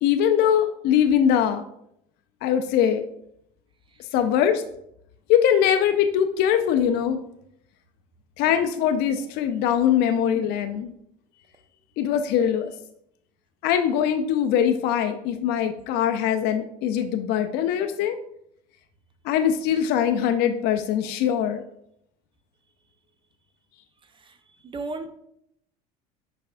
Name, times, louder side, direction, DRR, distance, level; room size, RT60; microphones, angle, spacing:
voice 1, 0.0-1.6 2.4-3.1 4.1-4.6 5.3-7.2 8.4-10.9 12.0-12.7 13.6-18.2 19.2-21.6, left 9 dB, 55° left, 7 dB, 0.4 m, -22 dB
voice 2, 24.6-25.1, right 3 dB, 25° right, 8 dB, 0.6 m, -34 dB
5.5 x 3.4 x 2.5 m, 0.75 s
hypercardioid pair, 85°, 19 cm